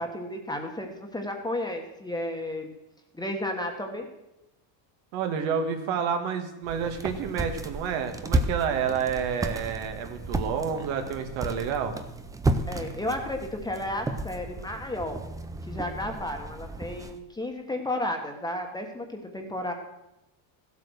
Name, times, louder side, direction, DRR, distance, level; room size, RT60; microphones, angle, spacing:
voice 1, 0.0-2.7 3.1-4.1 12.7-15.2 15.6-19.7, left 1 dB, 10° left, 3 dB, 1.4 m, -33 dB
voice 2, 5.1-12.0, right 7 dB, 65° right, 6 dB, 1.9 m, -29 dB
sound 1, 6.6-17.2, right 2 dB, 10° right, 0.4 m, -33 dB
15.0 x 8.2 x 6.4 m, 0.91 s
cardioid pair, 150°, 49 cm